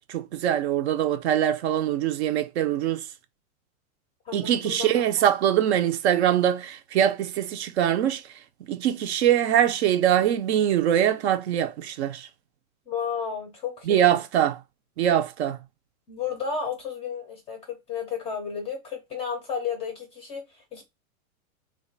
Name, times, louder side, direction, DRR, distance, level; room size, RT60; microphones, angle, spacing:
voice 1, 0.1-3.1 4.3-8.2 8.7-12.3 13.9-14.6 15.0-15.6, right 10 dB, 55° right, 0.5 m, -23 dB
voice 2, 4.3-4.9 12.9-14.2 16.1-20.8, left 6 dB, 15° left, 0.5 m, -32 dB
3.2 x 2.3 x 3.8 m
hypercardioid pair, 145°, 41 cm